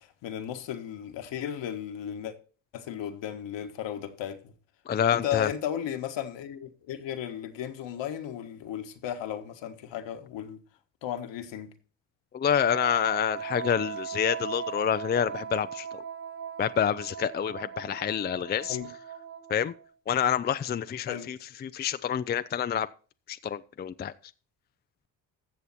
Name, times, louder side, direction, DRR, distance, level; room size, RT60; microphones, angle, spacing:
voice 1, 0.0-2.4 2.7-4.5 5.1-10.6 11.0-11.7 18.7-18.9 21.1-21.3, left 10 dB, 65° left, 1.5 m, -35 dB
voice 2, 4.9-5.5 12.3-16.0 16.6-18.8 19.5-19.7 20.1-22.9 23.3-24.1, left 8 dB, 20° left, 0.4 m, -28 dB
Wind instrument woodwind instrument, 12.5-19.9, right 8 dB, 50° right, 2.8 m, -38 dB
14.0 x 7.0 x 4.3 m
supercardioid pair, 70°, 48 cm